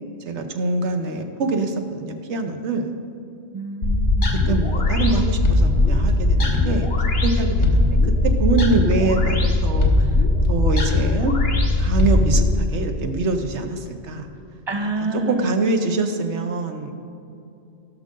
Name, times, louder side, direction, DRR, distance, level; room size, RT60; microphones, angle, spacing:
voice 1, 0.3-2.9 4.3-6.9 7.2-7.9 8.2-10.1 10.5-11.3 11.8-14.3 15.3-16.9, right 3 dB, 85° right, 5 dB, 1.2 m, -24 dB
voice 2, 3.5-4.3 14.7-15.5, right 2 dB, 35° right, 6 dB, 0.4 m, -27 dB
sound 1, 3.8-12.5, left 2 dB, 85° left, 1.6 m, -19 dB
17.0 x 6.4 x 3.8 m, 2.6 s
omnidirectional pair, 1.1 m